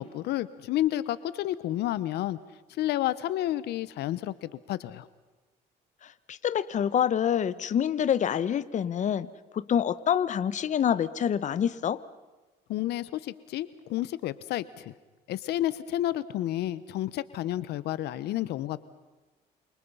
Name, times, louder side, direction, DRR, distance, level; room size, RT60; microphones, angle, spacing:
voice 1, 0.0-2.4 2.8-5.1 12.7-14.9 15.3-18.8, left 14 dB, 75° left, 16 dB, 1.0 m, -30 dB
voice 2, 6.0-9.3 9.5-12.0, left 9 dB, 45° left, 15 dB, 1.1 m, -26 dB
28.5 x 27.5 x 5.6 m, 1.2 s
cardioid pair, 110°, 17 cm